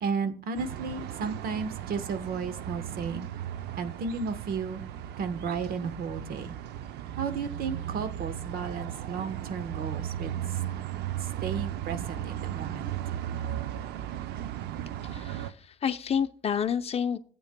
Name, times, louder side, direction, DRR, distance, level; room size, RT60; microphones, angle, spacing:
voice 1, 0.0-3.3 3.8-4.8 5.2-6.5 7.2-10.4 11.2-12.9, right 5 dB, 60° right, 10 dB, 1.1 m, -33 dB
sound 1, 0.6-15.5, right 11 dB, 75° right, 0.6 m, -36 dB
voice 2, 15.1-17.2, left 7 dB, 35° left, 10 dB, 0.7 m, -29 dB
14.5 x 8.2 x 2.2 m, 0.44 s
cardioid pair, 110°, 17 cm